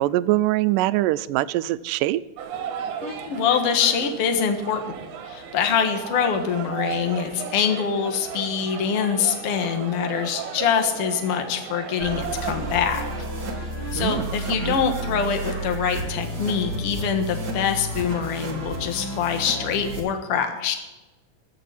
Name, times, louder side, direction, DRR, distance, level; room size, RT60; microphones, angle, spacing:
voice 1, 0.0-2.2 14.0-14.3 14.6-14.8, right 16 dB, 90° right, 16 dB, 2.2 m, -23 dB
sound 1, 2.4-13.5, right 7 dB, 75° right, 2.8 m, -35 dB
voice 2, 3.0-4.9 5.3-13.0 13.9-20.8, left 7 dB, 55° left, 6 dB, 2.1 m, -24 dB
sound 2, 12.0-20.0, right 1 dB, 35° right, 2.6 m, -31 dB
14.0 x 6.8 x 9.4 m, 1.1 s
omnidirectional pair, 3.7 m